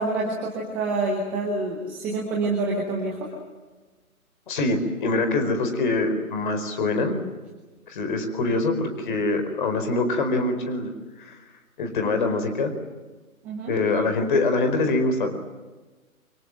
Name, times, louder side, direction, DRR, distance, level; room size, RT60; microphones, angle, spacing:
voice 1, 0.0-3.3 13.4-13.7, right 2 dB, 5° right, -1 dB, 0.8 m, -27 dB
voice 2, 4.5-7.2 7.9-10.9 11.2-11.4 11.8-12.7 13.7-15.5, left 2 dB, 35° left, 7 dB, 4.8 m, -24 dB
27.0 x 25.5 x 7.7 m, 1.3 s
figure-of-eight pair, 150°, 43 cm